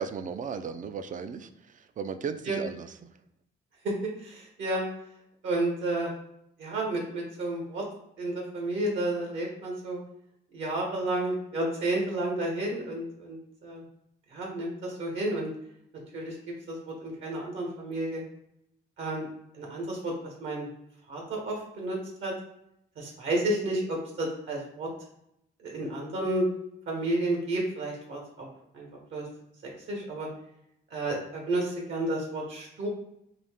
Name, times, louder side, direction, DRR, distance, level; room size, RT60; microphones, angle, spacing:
voice 1, 0.0-2.9, right 6 dB, 40° right, 10 dB, 0.4 m, -36 dB
voice 2, 4.0-4.9 5.4-6.1 6.6-7.8 8.2-10.0 10.5-13.8 14.3-15.5 16.1-16.3 16.7-18.2 19.0-19.3 19.6-20.7 21.1-22.3 23.0-24.9 25.6-26.5 26.9-28.5 28.7-28.9 29.1-29.2 29.9-30.3 30.9-32.9, right 1 dB, 70° right, -1 dB, 1.3 m, -31 dB
4.1 x 2.7 x 3.5 m, 0.77 s
cardioid pair, 90°, 20 cm